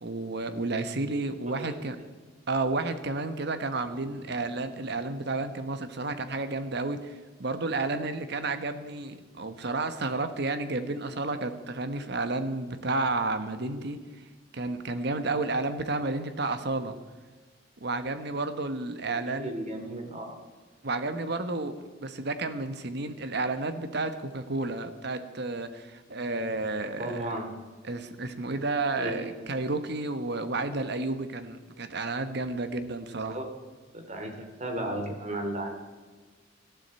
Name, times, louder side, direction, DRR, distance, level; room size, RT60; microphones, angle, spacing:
voice 1, 0.0-2.0 2.5-7.1 7.4-14.0 14.5-17.0 17.8-19.5 20.8-27.3 27.8-33.4, right 3 dB, 60° right, 9 dB, 1.3 m, -31 dB
voice 2, 19.1-20.4 27.0-27.5 28.9-29.5 33.0-33.5 33.9-35.8, right 1 dB, 40° right, 3 dB, 2.9 m, -35 dB
19.0 x 13.0 x 4.3 m, 1.4 s
head